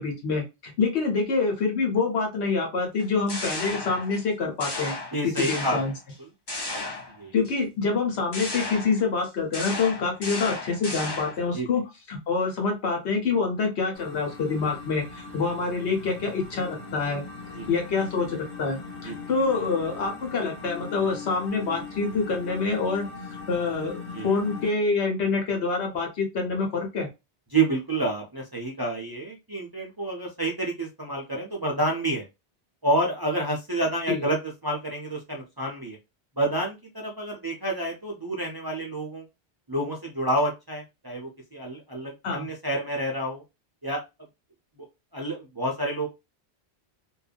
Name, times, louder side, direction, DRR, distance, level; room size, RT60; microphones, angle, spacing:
voice 1, 0.0-4.9 5.5-5.9 7.3-11.8 12.1-17.2 17.7-23.1 23.5-27.1 34.1-34.2 42.2-42.5, left 4 dB, 80° left, 2 dB, 1.2 m, -26 dB
sound 1, 3.0-4.3 4.6-6.1 6.5-7.5 8.3-11.5, left 2 dB, 25° left, 0.7 m, -34 dB
voice 2, 5.1-5.8 6.2-6.3 7.2-7.3 11.5-11.7 17.5-17.7 19.0-19.2 24.1-24.3 27.5-32.3 32.8-36.0 36.4-39.2 39.7-43.4 43.8-44.0 44.8-44.9 45.1-46.1, right 2 dB, 30° right, -1 dB, 0.5 m, -29 dB
sound 2, 13.9-24.7, left 4 dB, 45° left, 1.0 m, -40 dB
2.6 x 2.2 x 2.4 m, 0.24 s
omnidirectional pair, 1.1 m